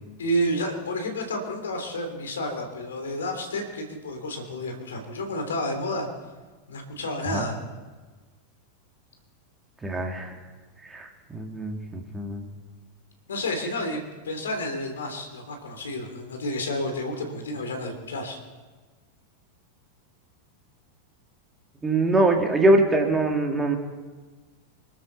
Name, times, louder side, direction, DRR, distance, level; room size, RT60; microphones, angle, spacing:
voice 1, 0.2-6.1 6.7-7.6 13.3-18.4, left 1 dB, 65° left, 4 dB, 3.1 m, -30 dB
voice 2, 9.8-10.3 10.8-12.4 21.8-23.8, right 2 dB, 15° right, 3 dB, 2.4 m, -23 dB
26.0 x 13.0 x 4.1 m, 1.3 s
figure-of-eight pair, 90°, 0 cm